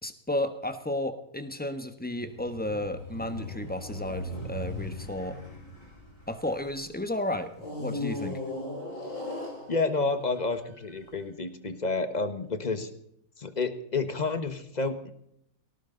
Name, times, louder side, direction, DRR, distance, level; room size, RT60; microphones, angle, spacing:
voice 1, 0.0-5.4 6.3-8.4, left 1 dB, 5° left, 8 dB, 1.2 m, -33 dB
sound 1, 2.1-6.8 7.6-11.0, left 1 dB, 55° left, 5.1 m, -38 dB
voice 2, 9.7-12.9 13.4-15.1, left 3 dB, 30° left, 9 dB, 1.4 m, -30 dB
19.0 x 18.0 x 4.0 m, 0.74 s
omnidirectional pair, 1.6 m